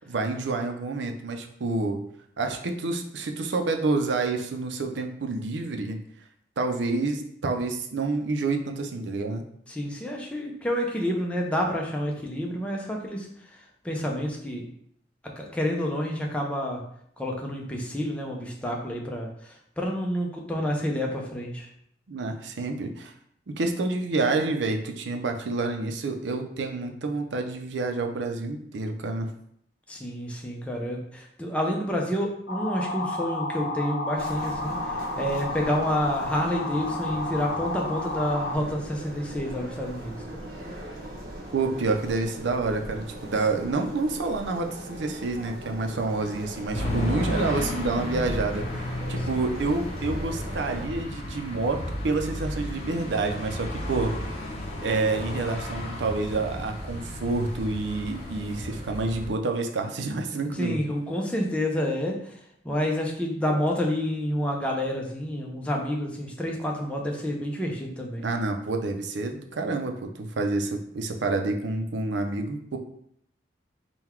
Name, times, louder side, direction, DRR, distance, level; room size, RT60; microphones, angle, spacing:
voice 1, 0.1-2.0 2.4-6.0 6.6-9.5 22.1-23.1 23.5-29.3 41.5-54.1 54.8-60.8 68.2-72.8, right 3 dB, 85° right, 5 dB, 0.5 m, -28 dB
voice 2, 9.7-13.3 13.8-14.6 15.4-16.8 17.2-21.7 29.9-40.2 46.7-47.2 60.6-62.4 62.6-68.2, equal, 5° left, -1 dB, 0.5 m, -29 dB
sound 1, 32.5-38.6, left 2 dB, 70° left, 0.6 m, -32 dB
sound 2, 34.1-50.9, right 1 dB, 55° right, 1.0 m, -40 dB
sound 3, 46.7-59.3, left 1 dB, 35° left, 0.8 m, -33 dB
3.8 x 2.3 x 4.4 m, 0.68 s
head